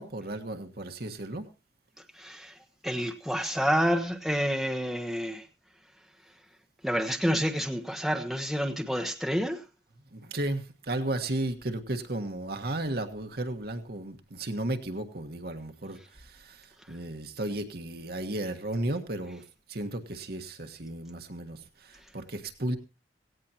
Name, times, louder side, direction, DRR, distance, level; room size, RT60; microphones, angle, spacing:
voice 1, 0.0-1.5 10.1-19.4 19.7-22.8, right 1 dB, 55° right, 6 dB, 1.5 m, -34 dB
voice 2, 2.2-2.5 2.8-5.4 6.8-9.6, equal, ahead, 3 dB, 1.2 m, -28 dB
17.0 x 16.5 x 2.9 m, 0.29 s
head